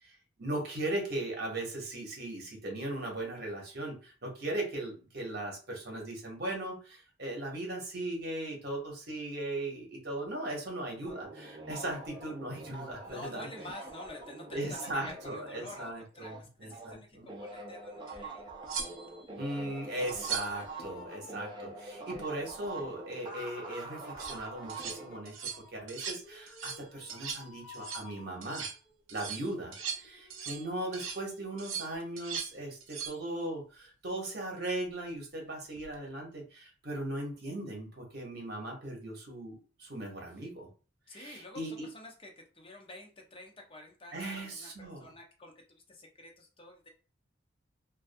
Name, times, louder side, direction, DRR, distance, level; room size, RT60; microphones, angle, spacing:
voice 1, 0.0-13.5 14.5-17.3 19.4-28.7 29.1-40.7 41.1-41.9 44.1-45.0, right 1 dB, 55° right, 1 dB, 0.9 m, -38 dB
sound 1, 11.0-16.9 17.2-25.2, right 2 dB, 25° right, 0.5 m, -45 dB
voice 2, 13.0-18.5 41.1-44.7 45.0-46.9, left 2 dB, 25° left, 1 dB, 0.6 m, -49 dB
sound 2, 18.1-18.2 18.7-19.2 20.1-20.6 24.0-24.4 24.7-25.0 25.3-25.6 25.9-26.2 26.5-26.8 27.1-27.5 27.7-28.1 28.4-28.8 29.1-30.7 30.9-31.2 31.6-32.5 32.8-33.2 35.8-36.0, right 7 dB, 90° right, 0.6 m, -39 dB
sound 3, 19.4-22.4 22.9-29.0 29.8-31.0, left 5 dB, 5° left, 1.1 m, -55 dB
2.5 x 2.3 x 2.5 m, 0.36 s
head